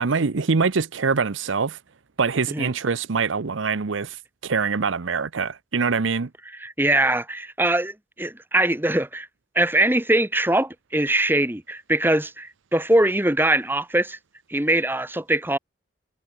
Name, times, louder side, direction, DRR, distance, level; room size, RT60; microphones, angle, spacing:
voice 1, 0.0-1.8 2.2-4.2 4.4-6.3, right 5 dB, 85° right, 0.8 m, -24 dB
voice 2, 6.5-9.3 9.5-14.2 14.5-15.6, right 1 dB, 10° right, 1.6 m, -22 dB
head